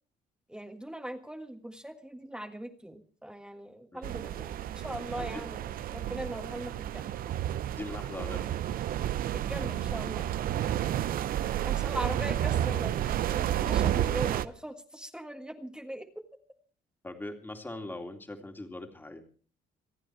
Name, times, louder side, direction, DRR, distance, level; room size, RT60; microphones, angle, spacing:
voice 1, 0.5-7.1 9.3-10.3 11.6-16.2, right 1 dB, 5° right, 5 dB, 1.7 m, -40 dB
sound 1, 4.0-14.4, right 11 dB, 60° right, 0.7 m, -31 dB
voice 2, 7.7-8.5 10.7-11.6 17.0-19.3, left 2 dB, 10° left, 4 dB, 2.6 m, -42 dB
26.5 x 9.2 x 4.7 m, 0.42 s
cardioid pair, 110°, 17 cm